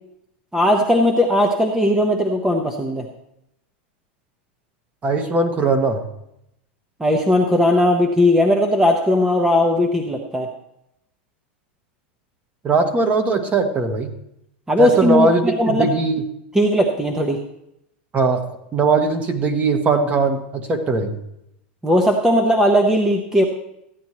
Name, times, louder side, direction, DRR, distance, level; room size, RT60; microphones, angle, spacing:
voice 1, 0.5-3.0 7.0-10.5 14.7-15.9 16.5-17.4 21.8-23.4, left 1 dB, 10° right, 3 dB, 0.8 m, -18 dB
voice 2, 5.0-6.1 12.6-14.1 14.8-16.2 18.1-18.5 18.7-21.2, right 3 dB, 25° right, 6 dB, 1.2 m, -19 dB
14.5 x 9.5 x 3.0 m, 0.81 s
supercardioid pair, 125°, 6 cm